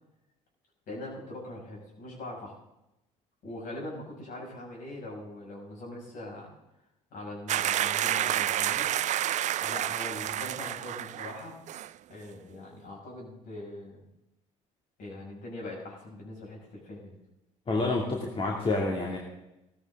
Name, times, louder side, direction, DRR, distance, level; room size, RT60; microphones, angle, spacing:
voice 1, 0.9-2.5 3.4-6.5 7.1-9.0 9.6-11.6 12.1-14.1 15.0-17.2, left 1 dB, 60° left, -2 dB, 6.8 m, -42 dB
sound 1, 7.5-11.4 11.7-11.9, right 12 dB, 50° right, 0.5 m, -29 dB
voice 2, 17.7-19.2, left 2 dB, 35° left, -2 dB, 2.7 m, -28 dB
16.5 x 13.5 x 3.9 m, 0.91 s
hypercardioid pair, 65°, 16 cm